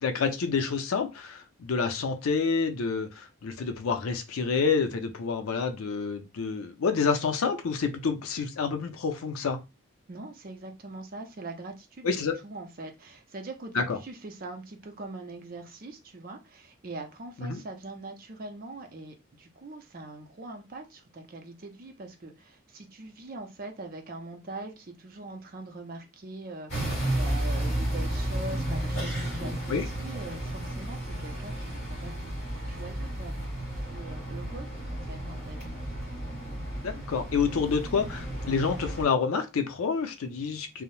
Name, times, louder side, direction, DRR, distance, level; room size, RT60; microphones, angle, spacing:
voice 1, 0.0-9.6 12.0-12.3 13.7-14.0 17.4-17.6 29.7-29.8 36.8-40.8, left 5 dB, 90° left, 0.5 m, -28 dB
voice 2, 10.1-12.1 12.4-33.5 33.7-35.7, right 2 dB, 45° right, 0.5 m, -42 dB
sound 1, 26.7-39.0, right 1 dB, 30° left, 1.6 m, -33 dB
2.6 x 2.0 x 3.0 m
head